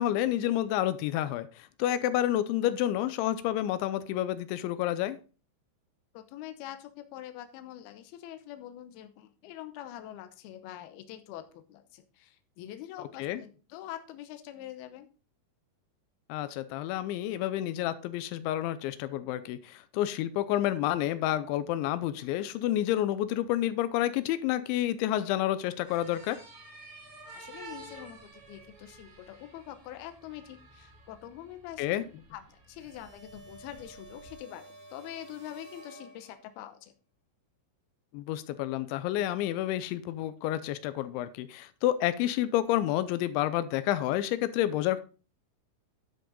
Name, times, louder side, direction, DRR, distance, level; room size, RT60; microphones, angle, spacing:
voice 1, 0.0-5.2 13.2-13.4 16.3-26.4 31.8-32.0 38.1-45.0, left 13 dB, 90° left, 13 dB, 3.1 m, -29 dB
voice 2, 6.1-15.1 16.7-16.8 27.3-36.9, left 12 dB, 75° left, 8 dB, 2.6 m, -45 dB
sound 1, 25.9-34.4, right 3 dB, 45° right, 2.0 m, -51 dB
sound 2, 32.8-36.7, right 1 dB, 20° right, 2.6 m, -51 dB
10.0 x 7.7 x 3.9 m, 0.35 s
omnidirectional pair, 5.2 m